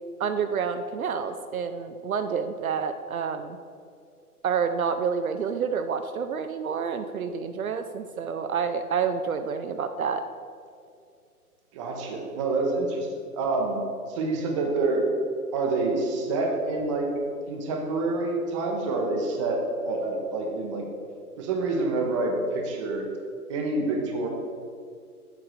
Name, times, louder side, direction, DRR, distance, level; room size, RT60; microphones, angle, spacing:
voice 1, 0.2-3.6 4.4-10.2, right 6 dB, 65° right, 8 dB, 0.5 m, -28 dB
voice 2, 11.7-13.1 13.3-15.0 15.5-17.1 17.5-20.8 21.4-23.0 23.5-24.3, right 3 dB, 20° right, 1 dB, 0.7 m, -27 dB
8.0 x 3.6 x 6.2 m, 2.3 s
figure-of-eight pair, 130°, 46 cm